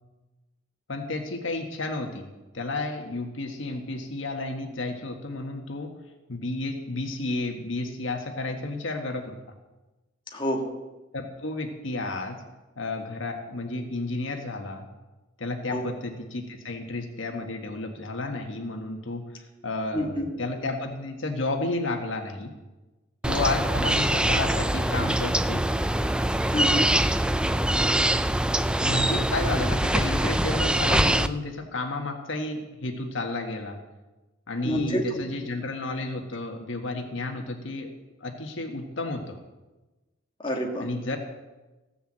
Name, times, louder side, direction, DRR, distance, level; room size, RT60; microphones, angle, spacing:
voice 1, 0.9-2.3 2.5-5.9 6.3-9.4 11.1-12.4 12.8-14.9 15.4-22.5 23.2-25.6 28.8-33.8 34.5-37.9 38.2-39.4 40.8-41.2, left 2 dB, 70° left, 3 dB, 1.6 m, -32 dB
voice 2, 10.3-10.7 15.7-15.8 19.9-20.3 26.5-26.9 34.6-35.2 40.4-40.9, equal, 25° left, 0 dB, 1.5 m, -28 dB
sound 1, 23.2-31.3, right 1 dB, 5° right, 0.3 m, -24 dB
15.5 x 7.0 x 7.5 m, 1.1 s
head